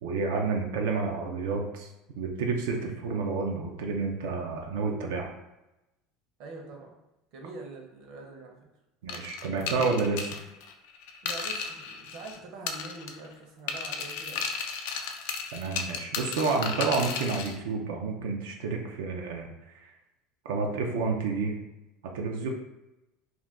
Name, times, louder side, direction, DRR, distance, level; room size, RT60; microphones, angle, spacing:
voice 1, 0.0-1.9 2.2-5.3 9.0-10.3 15.5-19.9 20.4-21.6 22.0-22.5, right 4 dB, 90° right, 2 dB, 0.4 m, -30 dB
voice 2, 6.4-7.0 7.3-8.6 9.5-9.8 11.2-14.6, right 3 dB, 65° right, 1 dB, 0.7 m, -44 dB
sound 1, 9.1-12.4 12.7-13.3 13.7-17.5, left 5 dB, 80° left, 0.3 m, -34 dB
2.4 x 2.2 x 3.5 m, 0.95 s
supercardioid pair, 125°, 0 cm